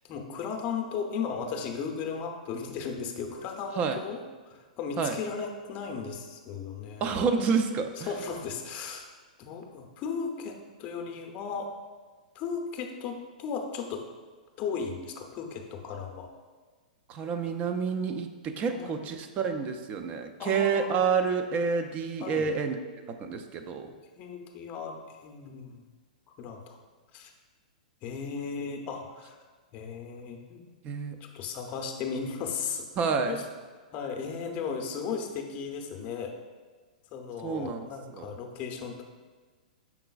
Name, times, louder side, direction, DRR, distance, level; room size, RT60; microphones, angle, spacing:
voice 1, 0.1-4.2 4.5-7.2 8.1-9.1 9.4-11.7 12.3-14.1 14.6-16.3 18.7-19.1 20.4-20.9 22.2-22.5 24.2-25.8 26.4-26.8 27.1-27.3 28.0-29.4 29.7-30.6 31.2-32.9 33.3-33.4 33.9-36.4 37.1-39.1, left 6 dB, 35° left, 3 dB, 0.6 m, -36 dB
voice 2, 7.0-8.1 17.1-22.8 23.2-23.9 30.8-31.2 33.0-33.4 37.4-38.3, right 5 dB, 30° right, 6 dB, 0.4 m, -29 dB
5.9 x 3.7 x 2.3 m, 1.4 s
hypercardioid pair, 120°, 5 cm